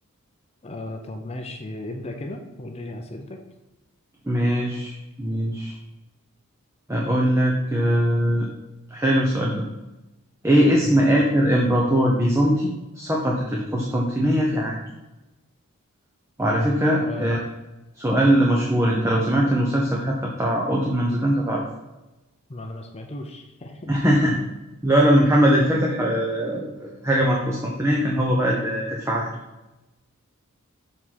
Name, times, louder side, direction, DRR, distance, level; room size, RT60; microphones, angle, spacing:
voice 1, 0.6-3.4 10.8-11.0 17.0-17.3 22.5-23.9, left 1 dB, 30° left, 3 dB, 0.6 m, -35 dB
voice 2, 4.3-5.7 6.9-8.5 8.9-9.6 10.4-12.7 13.0-14.8 16.4-17.4 18.0-21.6 23.9-24.4 24.8-29.3, equal, 10° right, -2 dB, 0.8 m, -21 dB
6.9 x 4.4 x 4.2 m, 1.0 s
head